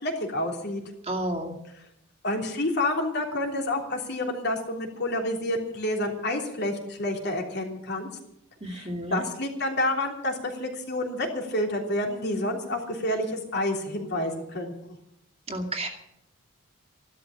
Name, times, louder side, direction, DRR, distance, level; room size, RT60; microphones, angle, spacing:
voice 1, 0.0-0.8 2.2-8.1 8.7-14.7, left 1 dB, 50° left, 1 dB, 3.3 m, -29 dB
voice 2, 1.0-1.5 8.6-9.2 15.5-15.9, right 1 dB, 25° right, 3 dB, 2.4 m, -31 dB
14.5 x 12.5 x 7.3 m, 0.79 s
head